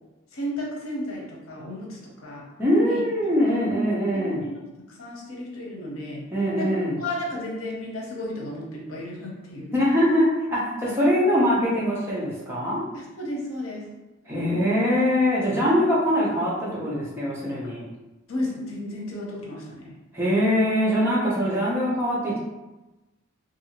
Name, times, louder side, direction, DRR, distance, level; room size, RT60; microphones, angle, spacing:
voice 1, 0.3-2.4 2.8-3.0 3.4-3.6 4.1-4.6 4.9-6.2 6.6-9.7 12.9-13.8 18.3-19.9, left 1 dB, 85° left, -2 dB, 0.7 m, -33 dB
voice 2, 2.6-4.4 6.3-6.9 9.7-12.8 14.3-17.9 20.1-22.4, equal, 10° right, -7 dB, 0.7 m, -22 dB
2.7 x 2.6 x 2.9 m, 1.1 s
head